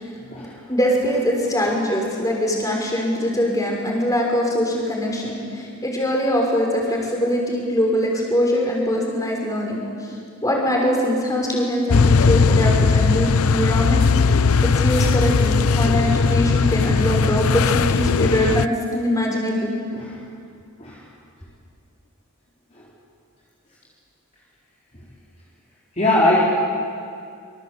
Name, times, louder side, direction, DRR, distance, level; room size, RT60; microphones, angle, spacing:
voice 1, 0.7-10.1 10.4-14.1 14.6-19.7, equal, 15° left, -1 dB, 5.8 m, -22 dB
sound 1, 11.9-18.6, left 4 dB, 70° left, 0.6 m, -18 dB
voice 2, 26.0-26.4, left 2 dB, 30° left, -6 dB, 4.1 m, -20 dB
27.0 x 25.5 x 8.4 m, 2.4 s
head